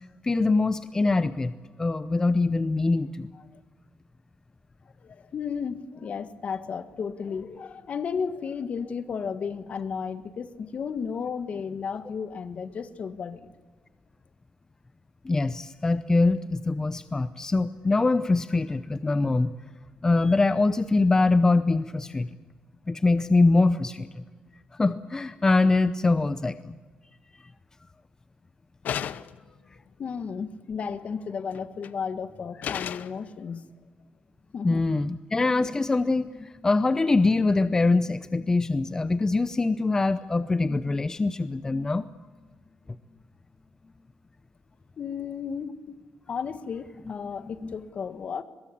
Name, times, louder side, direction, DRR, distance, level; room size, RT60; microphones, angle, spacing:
voice 1, 0.2-1.5 1.8-3.3 15.2-19.6 20.0-22.3 22.9-24.1 24.8-26.7 34.6-42.0 47.6-47.8, left 3 dB, 20° left, 13 dB, 0.7 m, -23 dB
voice 2, 5.0-13.5 30.0-33.7 34.5-34.8 45.0-45.9 46.3-48.4, left 6 dB, 50° left, 12 dB, 1.6 m, -33 dB
sound 1, 28.9-29.5 31.5-31.9 32.6-33.2, left 9 dB, 70° left, 0.8 m, -33 dB
22.5 x 22.0 x 8.6 m, 1.4 s
cardioid pair, 110°, 3 cm